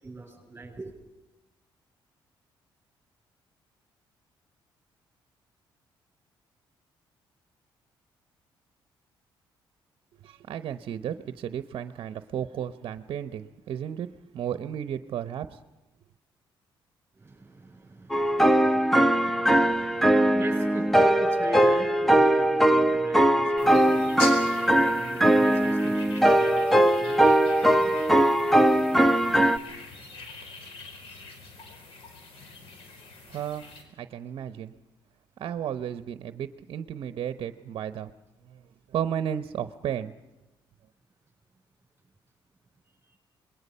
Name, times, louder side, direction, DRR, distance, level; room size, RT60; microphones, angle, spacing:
voice 1, 0.0-0.9 17.2-27.3, right 2 dB, 20° right, 0 dB, 7.5 m, -42 dB
voice 2, 10.2-14.1 14.3-15.6 33.3-33.7 34.0-34.7 35.4-38.1 38.4-38.6 38.9-40.1, right 9 dB, 65° right, 11 dB, 0.9 m, -33 dB
sound 1, 18.1-29.6, right 1 dB, ahead, 1.0 m, -21 dB
sound 2, 23.6-33.8, left 4 dB, 80° left, 4.7 m, -43 dB
27.0 x 21.0 x 5.6 m, 1.0 s
cardioid pair, 100°, 9 cm